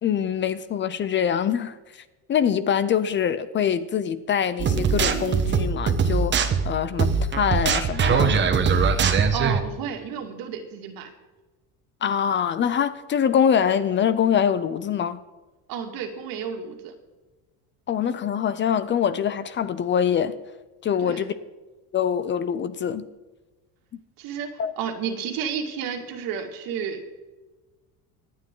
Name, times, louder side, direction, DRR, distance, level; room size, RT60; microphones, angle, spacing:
voice 1, 0.0-2.0 2.3-8.5 12.0-15.2 17.9-20.4 20.8-21.3 21.9-23.0 24.6-24.7, left 8 dB, 30° left, 0.6 m, -24 dB
sound 1, 4.6-9.6, right 5 dB, 30° right, 1.1 m, -21 dB
voice 2, 9.3-11.1 15.7-16.9 21.0-21.2 24.2-27.1, right 7 dB, 70° right, 2.3 m, -31 dB
24.5 x 9.1 x 3.8 m
cardioid pair, 155°, 37 cm